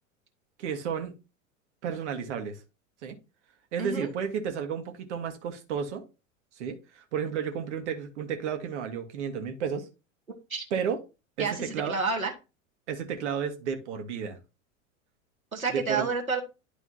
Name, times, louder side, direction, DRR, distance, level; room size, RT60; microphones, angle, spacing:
voice 1, 0.6-1.1 1.8-2.6 3.0-3.1 3.7-6.0 6.6-9.9 10.7-11.0 11.4-11.9 12.9-14.4 15.7-16.1, right 7 dB, 55° right, 1.5 m, -32 dB
voice 2, 3.8-4.1 10.5-10.6 11.4-12.3 15.5-16.4, right 4 dB, 85° right, 1.5 m, -29 dB
11.5 x 4.8 x 2.7 m
figure-of-eight pair, 85°, 41 cm